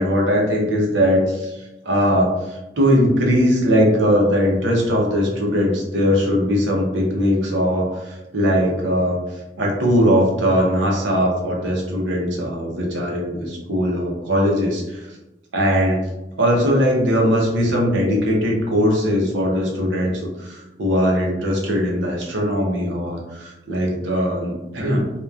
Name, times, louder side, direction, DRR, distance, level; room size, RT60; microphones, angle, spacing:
voice 1, 0.0-9.2 9.6-15.1 15.5-16.0 16.4-25.0, equal, 80° right, -1 dB, 0.7 m, -20 dB
2.9 x 2.2 x 2.3 m, 1.0 s
head